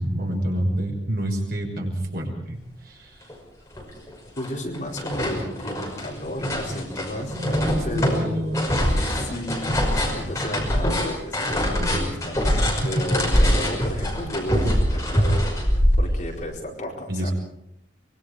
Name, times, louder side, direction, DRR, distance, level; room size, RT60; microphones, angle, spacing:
voice 1, 0.0-3.3 7.3-8.7 10.5-10.7 11.6-12.1 12.8-13.0 17.1-17.3, equal, 55° right, 1 dB, 6.0 m, -28 dB
sound 1, 3.3-3.4 3.7-4.5 4.7-16.4, equal, 15° left, 5.7 m, -23 dB
voice 2, 4.4-7.4 7.8-8.5 9.1-12.4 12.8-17.3, left 1 dB, 40° left, -1 dB, 4.5 m, -33 dB
25.0 x 22.5 x 5.0 m, 0.78 s
head